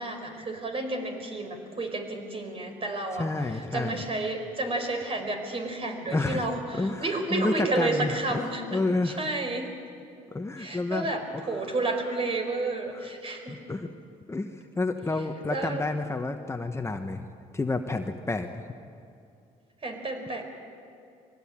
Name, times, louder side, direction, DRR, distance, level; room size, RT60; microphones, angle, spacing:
voice 1, 0.0-3.3 3.5-9.7 10.6-13.6 15.5-15.9 19.8-20.4, right 2 dB, 40° right, 4 dB, 4.9 m, -31 dB
voice 2, 3.2-4.1 6.1-6.5 6.7-9.2 10.3-11.1 11.3-11.4 12.9-13.1 13.5-13.9 14.3-17.3 17.5-18.6, left 2 dB, 20° left, 5 dB, 1.2 m, -30 dB
23.0 x 17.5 x 8.8 m, 2.5 s
supercardioid pair, 85°, 15 cm